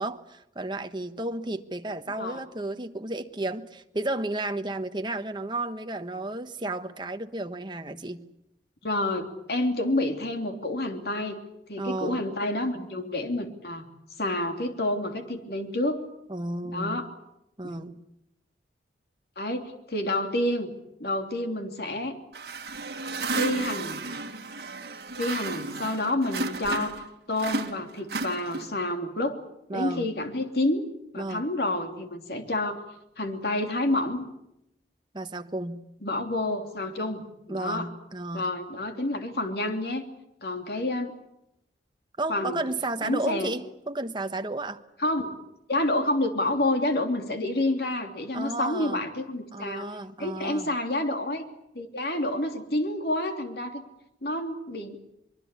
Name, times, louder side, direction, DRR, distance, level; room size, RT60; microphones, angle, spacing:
voice 1, 0.0-8.2 11.8-12.2 16.3-17.0 17.6-18.0 29.7-30.1 31.2-31.5 35.1-35.8 37.5-38.5 42.2-44.8 48.3-49.0 49.5-50.7, right 2 dB, 25° right, 8 dB, 1.3 m, -33 dB
voice 2, 8.8-11.4 11.7-13.8 14.2-16.0 16.7-17.1 17.6-17.8 19.4-20.7 21.0-22.2 23.3-24.0 25.2-27.0 27.3-29.4 29.7-30.8 31.1-32.8 33.2-34.3 36.0-37.9 38.3-40.0 40.4-41.2 42.3-42.6 43.0-43.5 45.0-45.3 45.7-49.9 50.2-51.4 51.7-53.8 54.2-55.0, left 1 dB, 60° left, 5 dB, 3.1 m, -29 dB
sound 1, 22.3-27.1 27.4-28.9, right 3 dB, 60° right, 2.1 m, -33 dB
24.5 x 22.5 x 8.4 m, 0.84 s
head